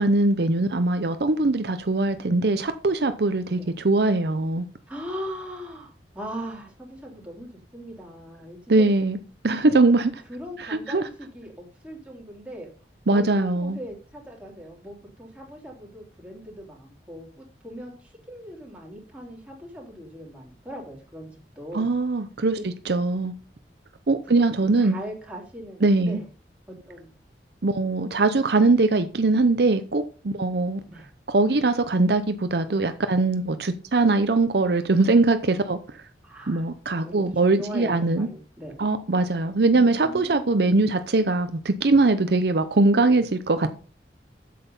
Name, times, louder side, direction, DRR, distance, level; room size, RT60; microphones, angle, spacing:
voice 1, 0.0-4.6 8.7-9.2 9.4-10.2 10.6-11.0 13.1-13.8 21.7-22.6 22.9-23.3 24.1-25.0 25.8-26.2 27.6-30.8 31.3-35.8 36.5-38.3 38.8-43.7, right 3 dB, 65° right, 0.7 m, -21 dB
voice 2, 4.9-8.9 10.3-12.7 13.1-21.3 21.5-21.9 22.6-22.7 24.8-26.2 26.7-27.1 30.9-31.1 36.2-36.7 37.0-38.8 39.7-40.8, equal, 10° right, 3.4 m, -39 dB
8.2 x 7.7 x 5.4 m
head